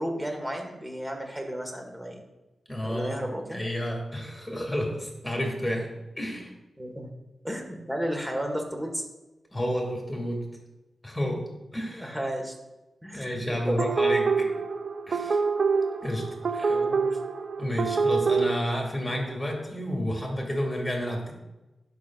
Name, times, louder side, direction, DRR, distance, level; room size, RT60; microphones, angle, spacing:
voice 1, 0.0-2.2 2.8-3.6 6.8-7.1 7.4-9.1 11.9-12.5 13.0-13.9 16.7-17.2, equal, 10° right, 2 dB, 1.9 m, -33 dB
voice 2, 2.7-3.2 3.5-5.9 6.2-6.5 9.5-10.4 11.0-12.2 13.1-14.5 15.1-15.4 16.0-16.2 16.5-16.8 17.6-21.3, equal, 15° left, 0 dB, 2.6 m, -30 dB
sound 1, 13.8-18.6, right 4 dB, 70° right, 0.5 m, -26 dB
11.5 x 6.1 x 2.6 m, 1.0 s
cardioid pair, 50°, 0 cm